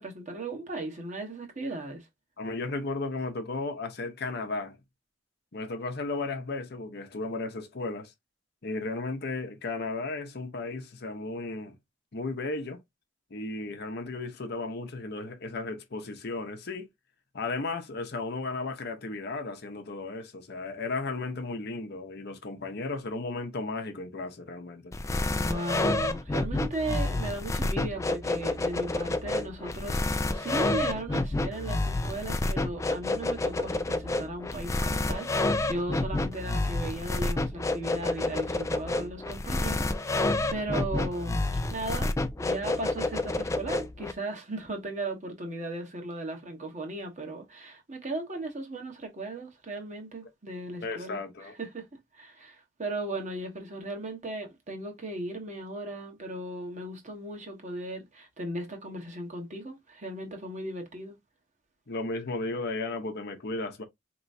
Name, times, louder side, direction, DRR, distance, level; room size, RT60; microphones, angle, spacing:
voice 1, 0.0-2.1 25.3-41.4 41.7-51.8 52.1-61.1, right 2 dB, 40° right, 1.3 m, -37 dB
voice 2, 2.4-4.8 5.5-8.1 8.6-11.8 12.1-12.8 13.3-16.9 17.3-24.9 50.8-51.5 61.9-63.8, left 3 dB, 55° left, 0.8 m, -34 dB
sound 1, 24.9-44.1, left 2 dB, 15° left, 0.4 m, -29 dB
4.4 x 3.0 x 2.6 m
head